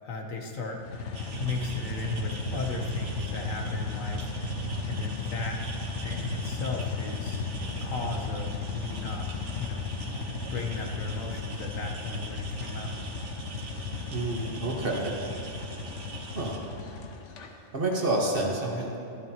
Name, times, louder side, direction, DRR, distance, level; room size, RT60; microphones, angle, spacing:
voice 1, 0.0-0.8 1.4-4.3 4.8-5.6 6.0-9.3 9.6-9.8 10.5-12.9, left 3 dB, 90° left, 2 dB, 1.5 m, -36 dB
sound 1, 0.8-17.5, left 3 dB, 70° left, 1.1 m, -35 dB
sound 2, 1.1-16.6, right 3 dB, 65° right, 1.4 m, -43 dB
voice 2, 14.1-15.1 16.3-16.6 17.7-19.0, right 2 dB, 45° right, -2 dB, 1.6 m, -28 dB
13.0 x 12.5 x 2.9 m, 2.9 s
omnidirectional pair, 1.3 m